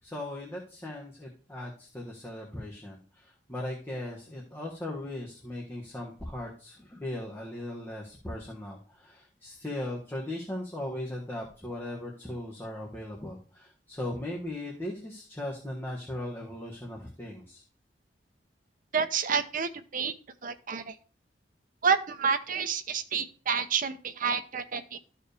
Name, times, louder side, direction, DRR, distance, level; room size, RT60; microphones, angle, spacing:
voice 1, 0.0-17.6, left 1 dB, 15° left, -3 dB, 1.5 m, -38 dB
voice 2, 18.9-20.1 20.4-20.9 21.8-25.0, right 6 dB, 50° right, 9 dB, 0.7 m, -29 dB
13.5 x 4.6 x 3.4 m, 0.39 s
head